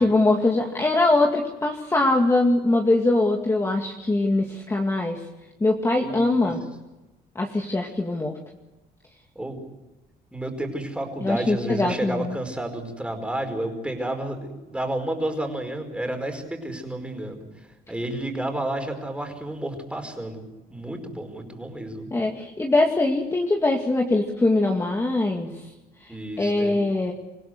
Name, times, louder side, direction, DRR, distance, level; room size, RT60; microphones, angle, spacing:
voice 1, 0.0-5.2 5.6-6.6 7.4-8.3 11.2-12.4 22.1-25.5 26.4-27.1, left 2 dB, 15° left, 1 dB, 2.3 m, -22 dB
voice 2, 6.0-6.5 9.3-9.6 10.3-17.4 17.9-22.1 26.1-26.8, right 1 dB, 5° right, 4 dB, 5.0 m, -31 dB
27.0 x 16.5 x 7.9 m, 1.0 s
cardioid pair, 110°, 17 cm